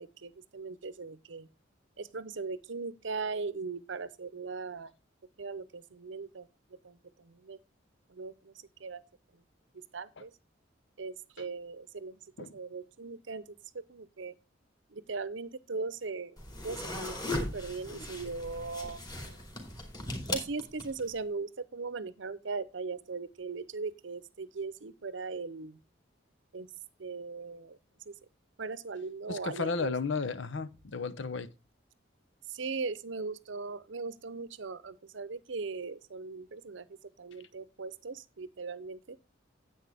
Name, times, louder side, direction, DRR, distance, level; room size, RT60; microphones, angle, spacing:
voice 1, 0.0-1.5 2.0-4.9 5.4-6.5 6.8-7.6 8.1-8.5 8.8-9.0 9.7-10.3 11.0-13.6 13.9-14.3 14.9-16.4 16.6-19.4 20.3-25.8 26.5-26.7 27.0-27.8 28.1-28.2 28.6-29.9 32.5-36.9 37.2-39.2, right 4 dB, 70° right, 0.7 m, -39 dB
sound 1, 16.4-21.1, left 1 dB, 20° left, 2.7 m, -38 dB
voice 2, 29.3-31.5, left 4 dB, 70° left, 0.8 m, -33 dB
10.0 x 8.3 x 3.5 m
head